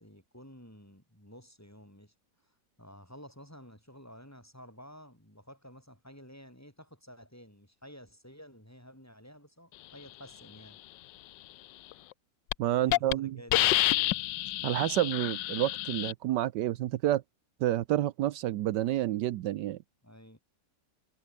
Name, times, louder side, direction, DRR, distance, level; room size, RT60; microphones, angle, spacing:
voice 1, 0.0-2.1 2.4-10.8 12.8-14.2 20.0-20.4, equal, 10° left, 7.0 m, -52 dB
Hiss, 11.9-12.1 12.5-12.6 12.9-13.1 13.5-16.1, left 17 dB, 85° left, 1.3 m, -28 dB
voice 2, 12.6-13.4 14.6-17.2 17.6-19.8, right 13 dB, 80° right, 1.3 m, -29 dB
omnidirectional pair, 1.9 m